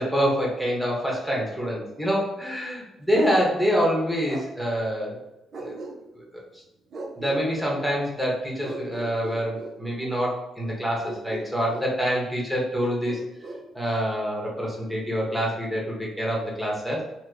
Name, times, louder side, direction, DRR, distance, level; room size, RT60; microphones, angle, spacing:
voice 1, 0.0-5.2 5.6-5.8 7.2-13.2 13.7-17.0, equal, 5° right, -3 dB, 1.1 m, -26 dB
Bark, 3.1-3.4 4.3-4.5 5.5-6.3 6.9-7.4 8.6-9.8 11.0-11.9 12.8-13.6, right 2 dB, 50° right, 0.6 m, -37 dB
2.9 x 2.2 x 3.7 m, 0.93 s
cardioid pair, 90°, 0 cm